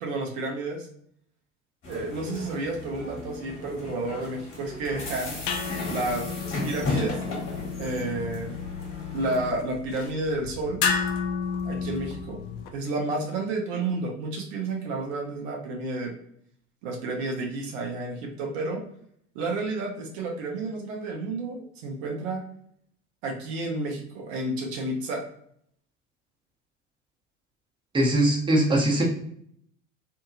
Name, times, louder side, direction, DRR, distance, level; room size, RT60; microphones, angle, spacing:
voice 1, 0.0-0.9 1.9-5.3 5.9-6.3 6.6-7.2 7.8-8.7 9.1-10.8 11.6-12.4 12.7-16.1 16.8-18.8 19.3-22.4 23.2-25.2, right 2 dB, 60° right, 0 dB, 0.8 m, -31 dB
sound 1, 1.8-9.5, left 3 dB, 35° left, 1.4 m, -35 dB
sound 2, 4.7-12.7, left 5 dB, 50° left, 0.6 m, -33 dB
voice 2, 27.9-29.0, right 1 dB, 15° right, -2 dB, 0.9 m, -21 dB
2.7 x 2.7 x 2.4 m, 0.66 s
figure-of-eight pair, 70°, 36 cm